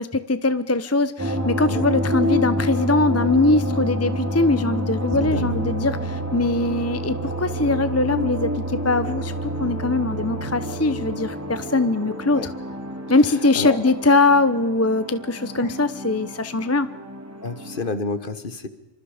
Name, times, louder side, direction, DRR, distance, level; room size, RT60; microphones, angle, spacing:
voice 1, 0.0-12.5 13.1-16.9, left 2 dB, 15° left, 12 dB, 0.7 m, -21 dB
sound 1, 1.2-17.9, equal, 10° right, 2.8 m, -28 dB
voice 2, 5.2-5.6 12.3-12.5 13.3-13.9 15.6-15.7 17.4-18.7, left 3 dB, 40° left, 12 dB, 1.5 m, -30 dB
26.5 x 26.0 x 5.1 m, 1.1 s
omnidirectional pair, 1.4 m